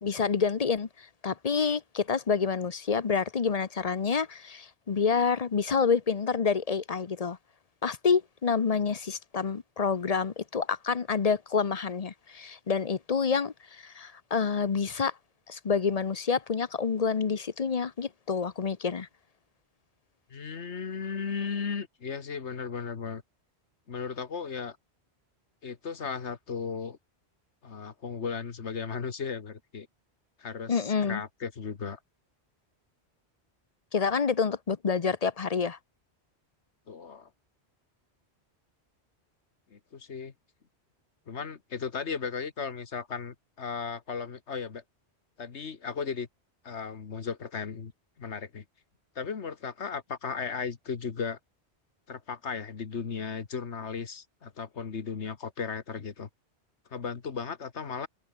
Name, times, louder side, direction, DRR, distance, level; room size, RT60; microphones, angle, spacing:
voice 1, 0.0-7.4 7.8-15.1 15.5-19.1 30.7-31.2 33.9-35.8, left 5 dB, 40° left, 0.8 m, -28 dB
voice 2, 20.3-23.2 23.9-24.8 25.6-27.0 27.6-29.9 30.4-32.0 36.9-37.3 39.7-40.3 41.3-44.8 45.4-46.3 46.6-47.9 48.2-48.6 49.2-51.4 52.1-56.3 56.9-58.1, left 6 dB, 85° left, 1.8 m, -36 dB
omnidirectional pair, 1.1 m